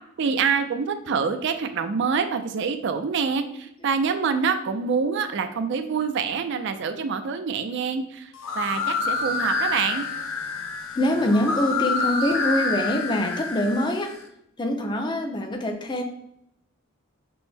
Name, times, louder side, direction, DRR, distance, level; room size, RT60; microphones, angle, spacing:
voice 1, 0.2-10.1, right 5 dB, 55° right, 9 dB, 0.4 m, -26 dB
sound 1, 8.3-14.2, left 3 dB, 70° left, 0.7 m, -28 dB
voice 2, 10.9-14.2 14.6-16.0, left 1 dB, 20° left, 4 dB, 0.5 m, -25 dB
6.0 x 2.0 x 3.4 m, 0.76 s
head